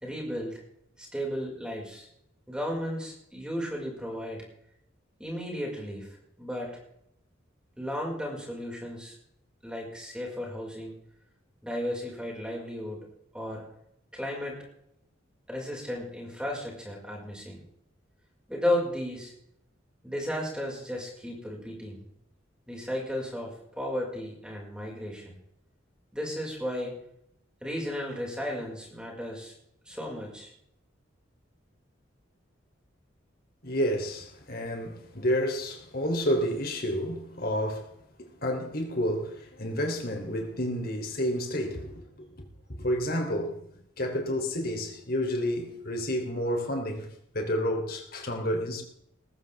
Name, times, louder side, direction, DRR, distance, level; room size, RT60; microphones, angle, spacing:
voice 1, 0.0-0.6 1.0-2.1 2.5-4.4 5.2-6.8 7.8-9.1 9.6-10.9 11.6-13.7 14.1-14.6 15.5-17.6 18.5-19.3 20.0-22.1 22.7-25.4 26.1-27.0 27.6-29.5 29.9-30.5, left 1 dB, 5° right, 5.3 m, -34 dB
voice 2, 33.6-37.9 38.2-42.1 42.7-47.1 47.3-48.8, equal, 50° left, 3.4 m, -30 dB
20.0 x 14.5 x 3.5 m
head